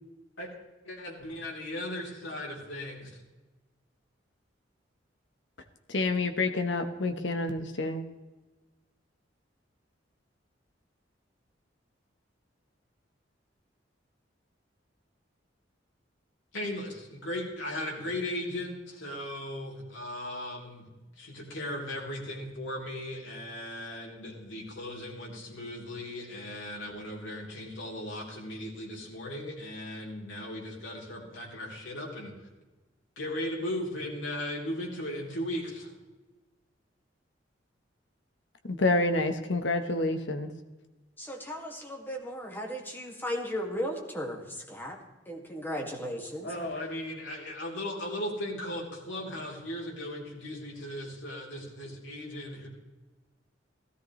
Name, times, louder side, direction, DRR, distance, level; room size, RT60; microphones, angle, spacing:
voice 1, 0.8-3.1 16.5-20.9 21.2-32.3 33.1-35.9 46.4-52.7, left 1 dB, 90° left, -3 dB, 3.5 m, -37 dB
voice 2, 5.9-8.0 38.7-40.5, left 2 dB, 70° left, 8 dB, 1.2 m, -28 dB
voice 3, 41.2-45.0 45.3-46.5, equal, 10° left, 1 dB, 2.1 m, -36 dB
16.0 x 13.5 x 3.2 m, 1.2 s
head